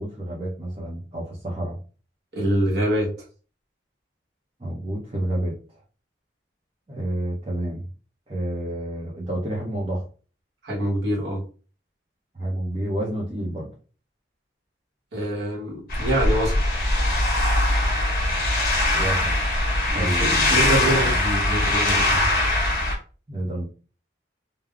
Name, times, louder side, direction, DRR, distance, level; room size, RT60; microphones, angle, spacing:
voice 1, 0.0-1.8 4.6-5.6 6.9-7.9 8.3-10.1 12.3-13.7 18.9-19.3 19.9-21.2 23.3-23.7, right 1 dB, 30° right, -5 dB, 0.6 m, -29 dB
voice 2, 2.3-3.1 10.6-11.4 15.1-16.6 19.9-22.3, right 1 dB, 60° right, -2 dB, 1.0 m, -25 dB
sound 1, 15.9-22.9, left 1 dB, 50° left, 1.1 m, -21 dB
3.4 x 2.0 x 2.3 m, 0.38 s
head